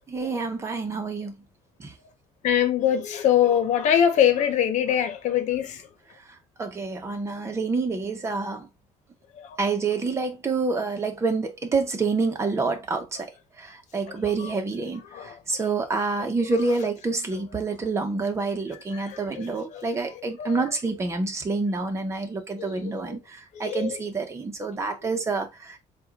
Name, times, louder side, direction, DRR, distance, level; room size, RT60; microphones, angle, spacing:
voice 1, 0.1-1.3 1.8-1.9 6.6-8.7 9.6-13.3 13.6-25.8, right 4 dB, 20° right, 1.2 m, -28 dB
voice 2, 2.4-5.8 15.1-15.3 18.9-19.8 20.4-20.5 22.6-22.9 23.5-23.9 25.0-25.1, left 9 dB, 70° left, 1.1 m, -23 dB
7.7 x 2.6 x 2.5 m
cardioid pair, 150°, 13 cm